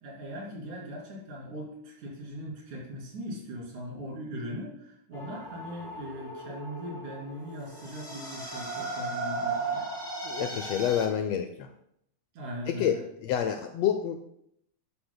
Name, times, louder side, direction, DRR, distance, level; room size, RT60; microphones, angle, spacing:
voice 1, 0.0-9.9 12.3-13.0, equal, 90° right, -3 dB, 4.2 m, -40 dB
sound 1, 5.1-11.1, right 3 dB, 15° left, 1.0 m, -36 dB
voice 2, 10.2-11.7 12.7-14.2, left 9 dB, 80° left, 7 dB, 1.5 m, -28 dB
11.5 x 8.7 x 2.2 m, 0.74 s
omnidirectional pair, 3.4 m